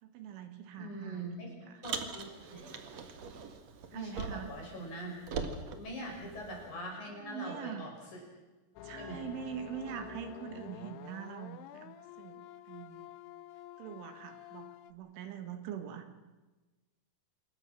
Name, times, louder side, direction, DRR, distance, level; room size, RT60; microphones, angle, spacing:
voice 1, 0.0-1.3 1.7-1.8 3.9-4.5 7.2-7.9 8.8-13.1 13.8-16.1, right 9 dB, 80° right, 8 dB, 4.2 m, -43 dB
voice 2, 0.8-1.5 1.8-2.7 3.9-5.5 5.8-8.2 9.0-9.3 9.9-10.0 10.3-10.4, equal, 40° left, -1 dB, 7.6 m, -43 dB
Car, 1.8-4.6 4.9-6.7, right 5 dB, 60° right, 1.8 m, -41 dB
sound 1, 8.8-14.9, left 13 dB, 75° left, 2.7 m, -49 dB
27.0 x 21.5 x 6.3 m, 1.2 s
omnidirectional pair, 5.5 m